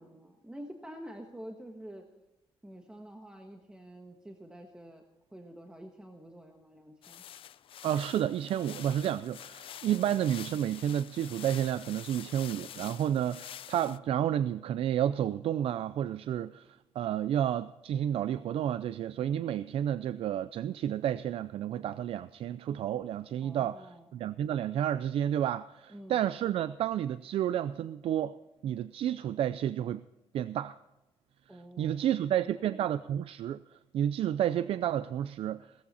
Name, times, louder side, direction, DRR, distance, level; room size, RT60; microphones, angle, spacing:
voice 1, 0.0-2.1 2.6-5.0 5.3-7.2 23.4-24.1 25.9-26.2 31.5-32.8, right 1 dB, 10° right, 1.4 m, -48 dB
sound 1, 7.0-14.0, left 10 dB, 65° left, 0.6 m, -47 dB
voice 2, 7.8-16.7 16.9-28.3 28.6-30.0 30.3-30.8 31.8-35.7, right 10 dB, 70° right, 0.5 m, -31 dB
18.0 x 14.0 x 4.2 m
cardioid pair, 135°, 10 cm